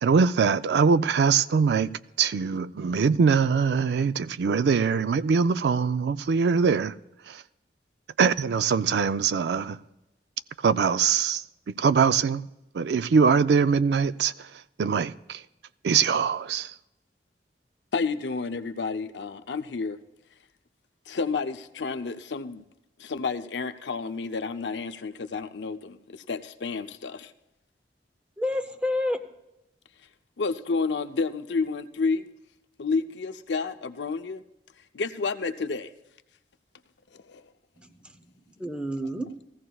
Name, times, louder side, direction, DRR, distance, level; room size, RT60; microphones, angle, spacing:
voice 1, 0.0-6.9 7.3-7.4 8.2-9.8 10.6-11.4 11.7-12.5 12.7-14.3 14.8-15.4 15.8-16.7, right 5 dB, 70° right, 0.4 m, -22 dB
voice 2, 17.9-20.0 21.1-22.6 23.0-27.3 30.4-32.2 32.8-34.4 34.9-35.9 37.1-37.4, left 4 dB, 85° left, 0.6 m, -30 dB
voice 3, 28.4-29.2 37.8-38.3 38.6-39.3, left 1 dB, 5° right, 0.6 m, -30 dB
19.0 x 15.0 x 2.3 m
head